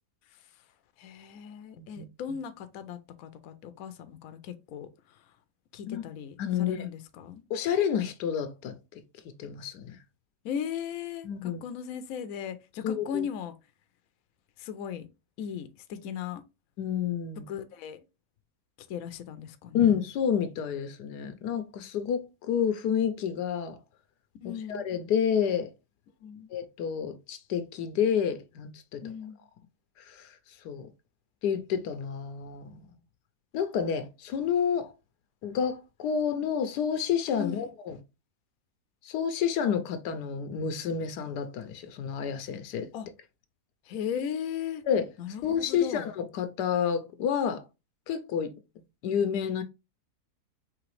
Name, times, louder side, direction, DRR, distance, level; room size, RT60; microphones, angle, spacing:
voice 1, 1.0-4.9 5.7-7.4 10.4-13.5 14.6-15.1 15.4-16.4 17.5-18.0 18.9-19.9 24.4-24.8 26.2-26.5 29.0-29.4 37.4-37.7 42.9-43.1 43.9-44.8 45.2-46.1, left 8 dB, 70° left, 1.0 m, -37 dB
voice 2, 6.4-6.8 7.5-9.0 9.4-10.0 11.2-11.6 12.8-13.2 16.8-17.4 19.7-23.8 24.7-25.7 26.5-29.0 30.0-30.3 30.6-30.9 31.4-32.9 33.5-34.9 35.4-38.0 39.0-42.9 44.9-45.1 45.4-47.6 48.1-48.5 49.0-49.6, left 8 dB, 85° left, 1.3 m, -29 dB
4.9 x 3.2 x 3.1 m
omnidirectional pair, 1.7 m